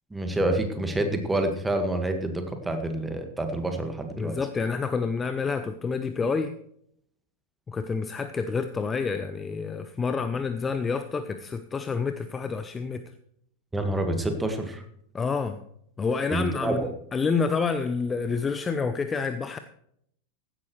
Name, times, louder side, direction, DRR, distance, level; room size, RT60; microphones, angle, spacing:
voice 1, 0.1-4.4 13.7-14.8 16.3-16.9, right 1 dB, 10° right, 6 dB, 1.8 m, -27 dB
voice 2, 4.2-6.5 7.7-13.0 15.1-15.6 16.0-19.6, left 5 dB, 15° left, 10 dB, 0.7 m, -28 dB
15.5 x 11.0 x 3.2 m, 0.68 s
figure-of-eight pair, 90°, 0 cm